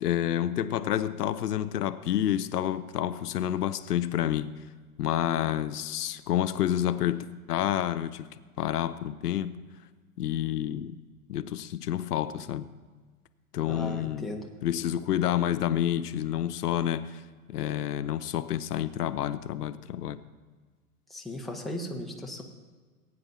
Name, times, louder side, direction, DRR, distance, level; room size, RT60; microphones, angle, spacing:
voice 1, 0.0-4.5 5.0-8.3 8.6-9.6 10.2-11.0 11.3-12.7 13.5-14.3 14.6-17.2 17.5-20.2, left 11 dB, 85° left, 13 dB, 0.7 m, -29 dB
voice 2, 13.7-14.4 21.1-22.4, left 1 dB, ahead, -1 dB, 1.3 m, -36 dB
19.5 x 9.6 x 2.8 m, 1.4 s
hypercardioid pair, 115°, 45 cm